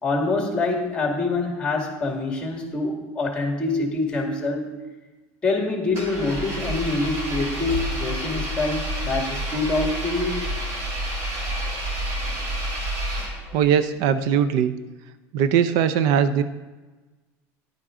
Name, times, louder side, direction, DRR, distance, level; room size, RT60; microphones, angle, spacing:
voice 1, 0.0-4.7 5.4-10.4, left 3 dB, 15° left, 1 dB, 2.0 m, -25 dB
Engine, 5.9-13.7, right 1 dB, 45° right, 2.7 m, -29 dB
voice 2, 13.5-14.7 15.3-16.4, right 8 dB, 65° right, 12 dB, 0.5 m, -20 dB
10.5 x 9.0 x 3.8 m, 1.2 s
cardioid pair, 140°, 7 cm